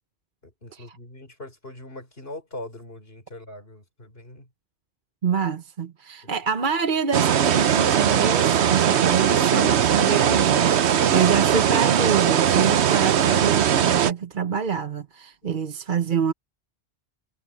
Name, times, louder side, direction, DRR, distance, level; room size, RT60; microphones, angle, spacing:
voice 1, 0.4-4.5 6.2-6.4 11.0-11.3 15.4-15.6, left 1 dB, 60° left, 5.5 m, -41 dB
voice 2, 5.2-16.3, right 6 dB, 50° right, 1.1 m, -26 dB
sound 1, 7.1-14.1, right 9 dB, 75° right, 1.1 m, -20 dB
omnidirectional pair, 1.1 m